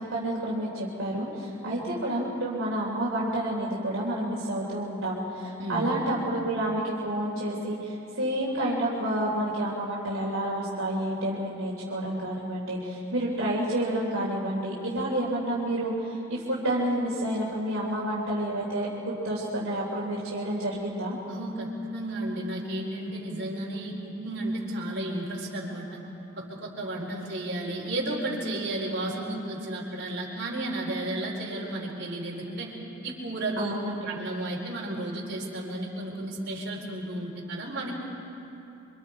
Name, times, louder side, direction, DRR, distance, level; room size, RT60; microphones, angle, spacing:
voice 1, 0.1-18.9 19.2-21.2 33.6-34.0, right 1 dB, 70° right, -6 dB, 3.3 m, -29 dB
voice 2, 5.6-5.9 21.3-26.0 26.4-32.7 33.0-33.7 34.1-37.9, right 1 dB, 55° right, -3 dB, 4.2 m, -33 dB
28.5 x 24.5 x 4.7 m, 2.9 s
head